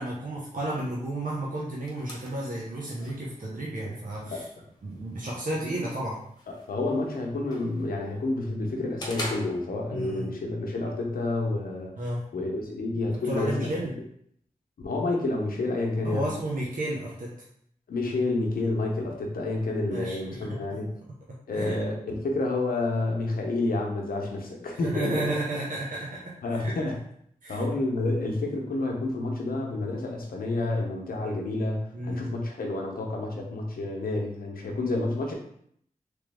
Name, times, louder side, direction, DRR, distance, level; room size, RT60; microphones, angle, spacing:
voice 1, 0.0-4.5 4.8-6.2 9.9-10.3 12.0-12.3 13.1-13.9 16.0-17.4 19.9-20.6 21.5-21.8 24.8-26.7 27.4-27.6 31.9-32.5, right 1 dB, 65° right, -5 dB, 0.9 m, -32 dB
sound 1, 1.2-10.2, left 1 dB, 30° left, 1.1 m, -45 dB
voice 2, 6.5-11.9 12.3-13.7 14.8-16.3 17.9-20.9 21.5-25.3 26.4-27.0 27.5-35.3, left 2 dB, 90° left, 1 dB, 0.7 m, -29 dB
3.4 x 3.0 x 3.4 m, 0.68 s
cardioid pair, 45°, 15 cm